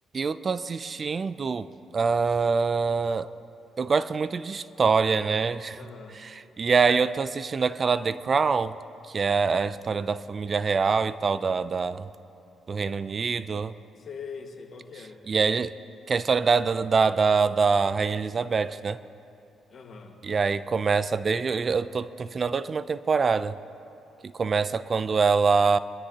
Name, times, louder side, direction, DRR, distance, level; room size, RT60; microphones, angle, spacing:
voice 1, 0.1-1.7 1.9-3.3 3.8-5.8 6.1-8.8 9.1-12.1 12.7-13.8 15.3-15.7 16.1-19.0 20.2-23.6 24.2-25.8, right 5 dB, 40° right, 0.3 m, -25 dB
voice 2, 5.8-6.2 14.0-15.2 19.7-20.2, left 5 dB, 55° left, 1.6 m, -42 dB
24.0 x 12.0 x 2.9 m
cardioid pair, 90°, 0 cm